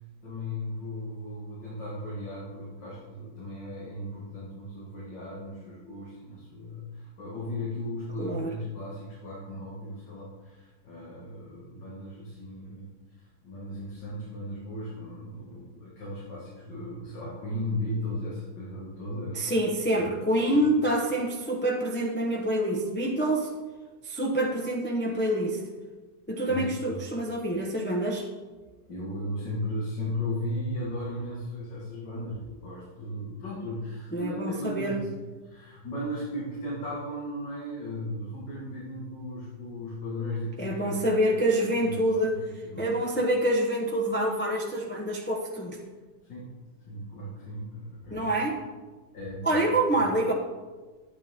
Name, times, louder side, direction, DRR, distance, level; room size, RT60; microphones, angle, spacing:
voice 1, 0.2-19.6 20.0-20.2 20.5-20.6 26.5-26.7 28.8-35.1 35.4-41.1 41.8-41.9 42.4-42.9 46.2-46.5 46.9-48.4 49.1-49.7 50.0-50.1, left 1 dB, 80° left, -7 dB, 2.9 m, -36 dB
voice 2, 8.2-8.5 19.3-23.5 24.0-25.6 26.3-28.3 34.1-35.0 40.6-42.4 42.8-45.8 48.1-48.6 49.4-50.3, right 1 dB, 10° left, -1 dB, 0.9 m, -26 dB
12.5 x 9.8 x 3.7 m, 1.3 s
omnidirectional pair, 1.9 m